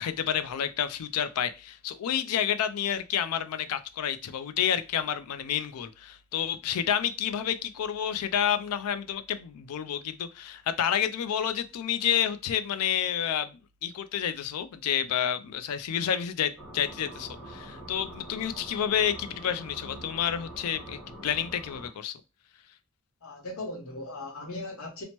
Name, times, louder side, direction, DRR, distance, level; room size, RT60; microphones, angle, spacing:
voice 1, 0.0-22.2, left 9 dB, 90° left, 0.4 m, -29 dB
sound 1, 16.6-21.9, right 1 dB, 5° right, 1.3 m, -44 dB
voice 2, 23.2-25.0, left 2 dB, 70° left, 0.8 m, -38 dB
2.9 x 2.1 x 2.9 m
head